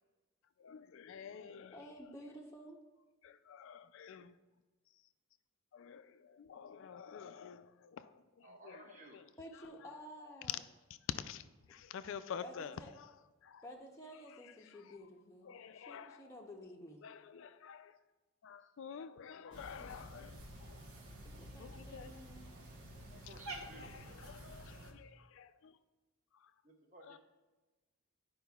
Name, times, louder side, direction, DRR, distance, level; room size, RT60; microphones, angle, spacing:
voice 1, 0.6-1.8 3.2-4.3 5.7-8.8 11.1-12.8 13.4-13.6 15.5-16.2 17.0-18.0 18.4-20.9 21.6-22.1 22.5-22.6 23.1-23.2 23.8-25.8 26.4-26.5 27.1-27.2, left 7 dB, 60° left, 0.3 m, -49 dB
voice 2, 1.7-2.8 9.4-10.6 12.4-12.9 13.6-17.1 21.2-22.5, equal, 15° left, 0.6 m, -52 dB
voice 3, 8.4-9.2 18.6-18.7 23.2-24.0 26.6-27.2, right 2 dB, 35° right, 1.0 m, -56 dB
Cat, 19.5-24.9, right 1 dB, 65° right, 1.1 m, -50 dB
12.0 x 5.0 x 2.3 m
head